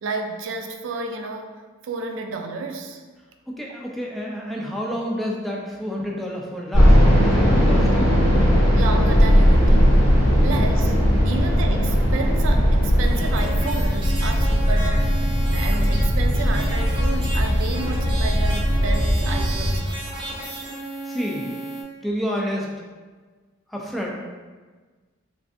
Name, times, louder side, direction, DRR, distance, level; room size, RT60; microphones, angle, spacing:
voice 1, 0.0-1.5 1.8-3.0 8.7-10.0 10.4-10.9 11.2-20.1, right 3 dB, 75° right, 4 dB, 0.3 m, -31 dB
voice 2, 3.5-7.0 7.2-8.1 21.0-21.5 22.0-22.7 23.7-24.1, equal, ahead, -2 dB, 0.3 m, -29 dB
sound 1, 6.7-13.5, equal, 90° left, 1.2 m, -18 dB
sound 2, 9.1-19.8, equal, 65° left, 0.7 m, -20 dB
sound 3, 13.0-21.8, right 2 dB, 25° right, 0.7 m, -34 dB
3.1 x 2.5 x 2.5 m, 1.4 s
head